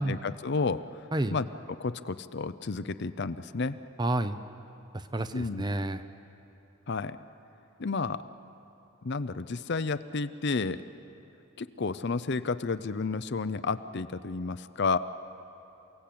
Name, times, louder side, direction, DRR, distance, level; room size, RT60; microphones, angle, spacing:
voice 1, 0.0-1.0 1.3-3.8 5.3-5.6 6.9-7.2 7.8-8.2 9.0-10.8 11.6-15.0, left 4 dB, 50° left, 13 dB, 0.6 m, -31 dB
voice 2, 4.0-4.4 5.1-6.0, right 1 dB, 20° right, 10 dB, 0.7 m, -29 dB
28.5 x 17.5 x 8.6 m, 3.0 s
head